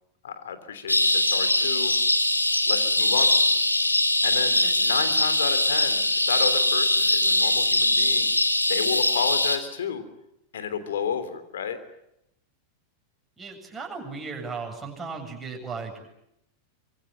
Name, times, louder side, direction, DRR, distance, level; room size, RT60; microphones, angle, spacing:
voice 1, 0.2-2.0 2.7-3.8 4.2-8.3 8.7-10.0 10.5-11.8, left 7 dB, 60° left, 10 dB, 3.3 m, -32 dB
sound 1, 0.9-9.6, left 1 dB, 85° left, 2.2 m, -22 dB
voice 2, 13.4-16.0, right 4 dB, 10° right, 0 dB, 7.8 m, -36 dB
25.5 x 24.0 x 9.1 m, 0.83 s
figure-of-eight pair, 90°, 0 cm